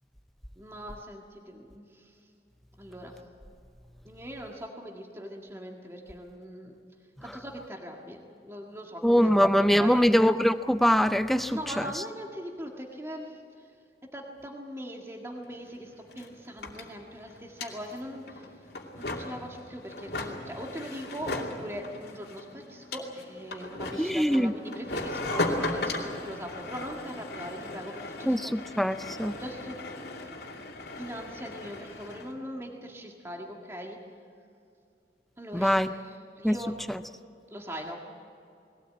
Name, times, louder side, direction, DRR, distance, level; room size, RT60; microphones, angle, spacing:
voice 1, 0.6-2.2 2.8-3.2 4.0-6.7 7.2-10.2 11.4-13.7 14.1-18.5 19.0-28.8 29.4-29.8 31.0-34.0 35.4-36.8 37.5-38.0, equal, 15° right, 0 dB, 1.7 m, -41 dB
voice 2, 9.0-11.9 24.0-24.5 25.3-25.4 28.3-29.3 35.5-35.9 36.4-36.6 36.9-37.0, equal, ahead, 11 dB, 0.5 m, -23 dB
sound 1, 15.4-15.5 15.7-32.3, left 2 dB, 60° left, 2.6 m, -37 dB
21.0 x 17.5 x 8.6 m, 2.5 s
head